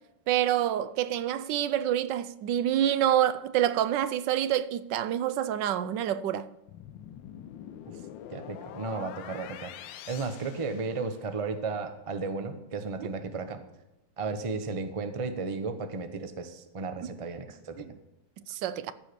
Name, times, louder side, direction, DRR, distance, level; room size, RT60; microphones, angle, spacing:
voice 1, 0.3-6.5 13.0-13.1 17.0-17.1 17.8-17.9 18.5-18.9, right 11 dB, 75° right, 1.2 m, -27 dB
sound 1, 6.7-11.4, left 10 dB, 80° left, 1.3 m, -45 dB
voice 2, 8.3-9.7 10.1-13.6 14.2-17.9, right 4 dB, 40° right, 0.4 m, -34 dB
14.5 x 4.8 x 6.7 m
omnidirectional pair, 2.0 m